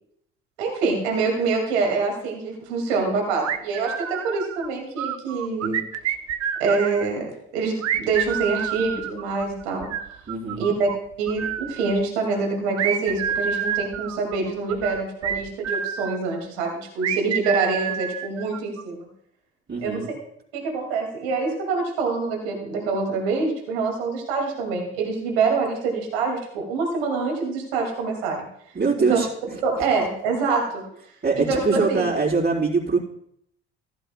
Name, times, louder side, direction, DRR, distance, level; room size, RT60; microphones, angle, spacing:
voice 1, 0.6-5.8 6.6-9.9 10.6-10.9 11.2-19.1 19.8-20.0 20.5-28.4 29.0-29.2 29.6-30.8 31.4-31.6 31.9-32.1, right 4 dB, 85° right, 1 dB, 2.5 m, -25 dB
sound 1, 3.4-4.7 5.0-7.1 7.8-11.0 11.3-12.0 12.8-16.2 17.0-18.8, right 9 dB, 55° right, 0.8 m, -28 dB
voice 2, 10.3-10.7 19.7-20.1 28.7-29.6 31.2-33.0, right 4 dB, 35° right, -9 dB, 3.9 m, -23 dB
15.0 x 11.5 x 2.3 m, 0.71 s
hypercardioid pair, 55°, 31 cm